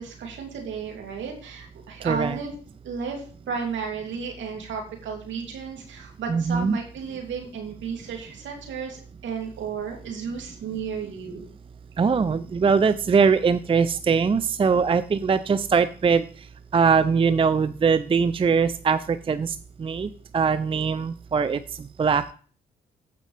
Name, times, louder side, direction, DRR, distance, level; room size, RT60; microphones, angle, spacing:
voice 1, 0.0-2.5 2.8-11.5, right 5 dB, 65° right, 1 dB, 2.8 m, -33 dB
voice 2, 2.0-2.4 6.3-6.8 12.0-16.2 16.7-22.3, right 5 dB, 25° right, 13 dB, 0.5 m, -22 dB
14.5 x 5.1 x 3.3 m, 0.43 s
hypercardioid pair, 50°, 21 cm